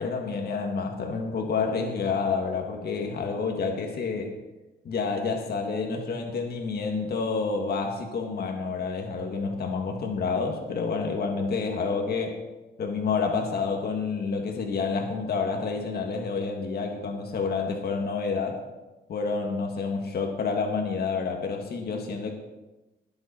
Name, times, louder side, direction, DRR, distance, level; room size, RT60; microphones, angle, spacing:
voice 1, 0.0-4.3 4.8-12.4 12.8-18.6 19.1-22.3, left 4 dB, 55° left, 2 dB, 1.6 m, -29 dB
20.0 x 7.8 x 4.3 m, 1.1 s
wide cardioid pair, 170°, 19 cm